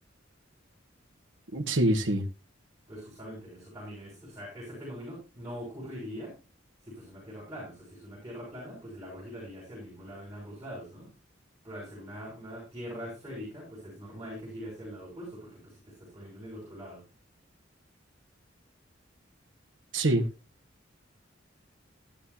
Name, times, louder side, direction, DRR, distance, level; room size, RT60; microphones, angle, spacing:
voice 1, 1.5-2.2 19.9-20.2, right 1 dB, 85° right, 1.5 m, -25 dB
voice 2, 2.9-6.3 6.8-11.1 11.6-17.0, equal, 20° right, 6.8 m, -42 dB
15.0 x 11.0 x 2.8 m
head